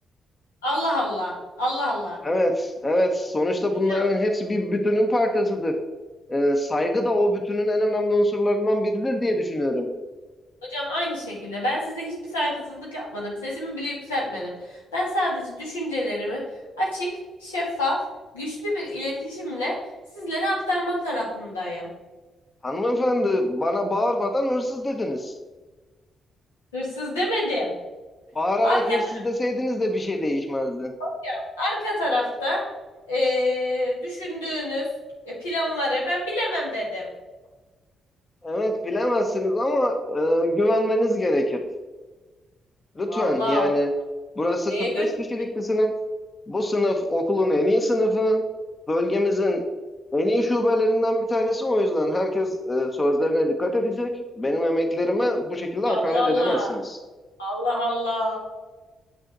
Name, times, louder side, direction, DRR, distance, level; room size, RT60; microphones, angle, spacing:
voice 1, 0.6-2.2 3.9-4.1 10.6-16.4 16.8-17.1 17.4-18.0 18.3-19.8 20.1-21.9 26.7-27.7 28.6-29.0 31.0-32.6 33.1-34.9 35.2-37.1 43.1-43.7 44.7-45.0 55.8-56.7 57.4-58.4, left 1 dB, 90° left, -5 dB, 2.0 m, -27 dB
voice 2, 2.2-5.7 6.3-9.9 22.6-25.3 28.3-30.9 38.4-41.6 43.0-43.9 44.4-45.9 46.5-48.4 48.9-49.6 50.1-57.0, left 1 dB, 30° left, 5 dB, 1.0 m, -23 dB
8.1 x 6.2 x 3.9 m, 1.2 s
hypercardioid pair, 40°, 0 cm